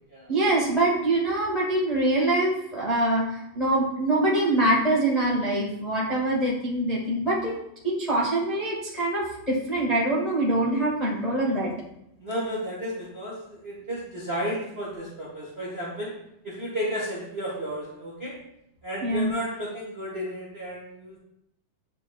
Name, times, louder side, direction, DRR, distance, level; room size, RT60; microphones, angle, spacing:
voice 1, 0.3-7.5 7.8-11.7 19.0-19.3, right 1 dB, 80° left, -5 dB, 0.3 m, -24 dB
voice 2, 12.2-16.1 16.4-18.3 18.8-21.2, equal, 55° right, -5 dB, 0.7 m, -33 dB
9.8 x 5.8 x 2.3 m, 0.80 s
omnidirectional pair, 3.7 m